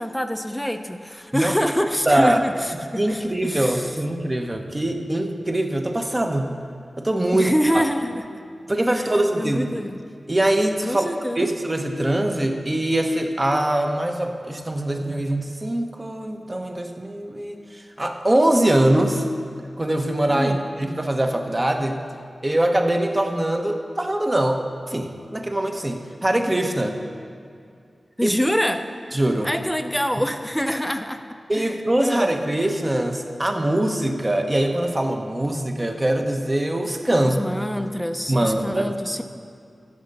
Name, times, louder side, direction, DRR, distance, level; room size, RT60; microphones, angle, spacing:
voice 1, 0.0-4.0 7.3-8.2 8.9-10.0 10.9-11.5 20.3-20.6 28.2-29.2 29.4-31.2 31.5-32.3 37.2-39.2, equal, 5° left, 7 dB, 0.6 m, -26 dB
voice 2, 2.1-2.4 2.9-6.5 7.0-7.8 8.7-9.6 10.3-11.1 11.4-19.2 19.8-22.0 22.4-24.6 24.9-27.0 28.2-28.3 29.1-29.5 31.5-37.4 38.3-38.9, right 1 dB, 25° right, 4 dB, 0.9 m, -22 dB
14.0 x 5.1 x 6.6 m, 2.4 s
wide cardioid pair, 90°, 0 cm